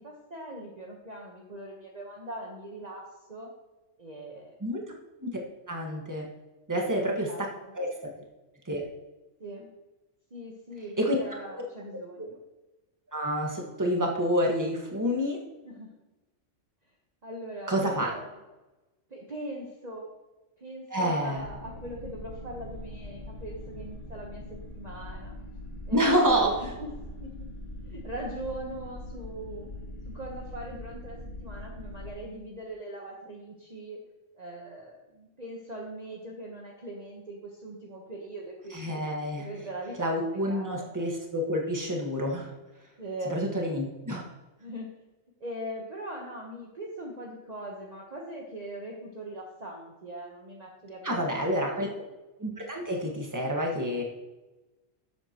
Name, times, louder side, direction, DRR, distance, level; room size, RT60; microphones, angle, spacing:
voice 1, 0.0-3.5 4.0-4.6 6.7-7.7 9.4-9.7 10.3-12.4 15.6-15.9 17.2-18.3 19.1-20.1 20.6-24.4 24.7-25.4 25.9-26.9 27.2-27.3 27.9-29.7 30.0-34.0 34.4-39.0 39.3-40.9 43.0-43.4 43.8-43.9 44.6-44.9 45.4-51.9, right 1 dB, 30° right, -2 dB, 1.2 m, -41 dB
voice 2, 5.7-6.3 6.7-7.3 7.7-7.9 8.7-8.8 11.0-11.2 11.4-11.5 13.1-15.4 17.7-18.1 20.9-21.4 25.9-26.5 38.7-39.5 40.0-42.5 43.3-44.3 51.0-51.9 52.4-54.0, equal, 15° right, 0 dB, 1.5 m, -28 dB
sound 1, 21.4-32.1, left 1 dB, 70° left, 1.8 m, -42 dB
12.0 x 7.9 x 3.0 m, 1.1 s
omnidirectional pair, 1.4 m